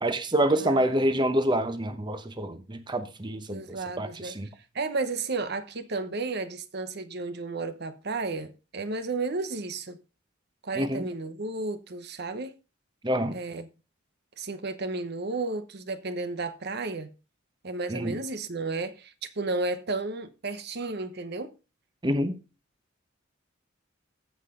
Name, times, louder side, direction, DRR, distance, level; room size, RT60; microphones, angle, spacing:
voice 1, 0.0-4.5 10.7-11.1 13.0-13.4 17.9-18.2 22.0-22.4, right 1 dB, 20° right, 0.9 m, -27 dB
voice 2, 0.6-0.9 3.5-4.3 4.7-10.0 10.6-12.6 13.3-13.7 14.4-17.1 17.6-21.5, right 3 dB, 55° right, 0.9 m, -33 dB
15.5 x 5.8 x 3.8 m
head